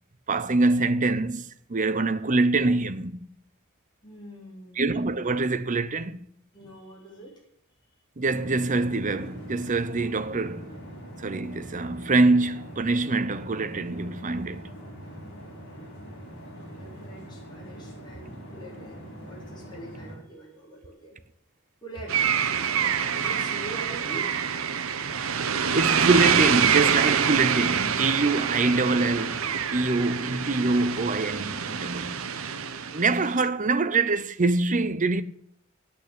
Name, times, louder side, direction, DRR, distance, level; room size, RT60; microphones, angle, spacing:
voice 1, 0.3-3.2 4.8-6.3 8.2-10.7 11.2-14.7 25.7-32.3 32.9-35.2, right 3 dB, 40° right, 0.8 m, -25 dB
voice 2, 4.0-5.0 6.5-7.4 12.5-12.7 16.6-21.2 21.8-22.3 23.1-24.3, right 1 dB, 20° left, 4.1 m, -44 dB
sound 1, 8.2-20.1, equal, 55° left, 4.9 m, -43 dB
sound 2, 22.1-33.4, right 7 dB, 90° right, 0.9 m, -26 dB
9.5 x 8.6 x 8.4 m
head